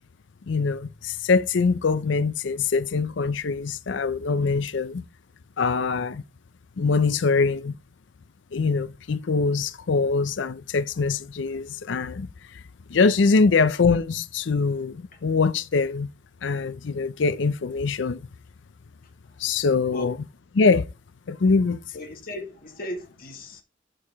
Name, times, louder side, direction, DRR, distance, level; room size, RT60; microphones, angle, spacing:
voice 1, 0.5-5.0 5.6-6.2 6.8-7.7 8.5-12.3 12.9-16.1 16.4-18.2 19.4-20.2 20.5-20.9 21.3-21.8, left 4 dB, 70° left, 0.5 m, -23 dB
voice 2, 21.9-23.6, left 1 dB, 50° left, 2.0 m, -36 dB
13.0 x 4.7 x 3.5 m
head